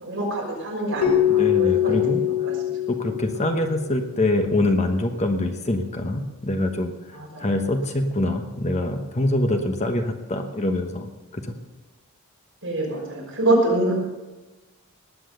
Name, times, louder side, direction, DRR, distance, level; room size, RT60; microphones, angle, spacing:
voice 1, 0.0-2.7 7.1-7.6 12.6-13.9, right 2 dB, 55° right, -3 dB, 6.0 m, -26 dB
Keyboard (musical), 1.0-3.8, left 11 dB, 70° left, 1.6 m, -23 dB
voice 2, 1.4-2.2 2.9-6.9 7.4-11.1 11.3-11.6, left 1 dB, 30° left, 6 dB, 1.1 m, -24 dB
19.5 x 8.7 x 6.8 m, 1.2 s
head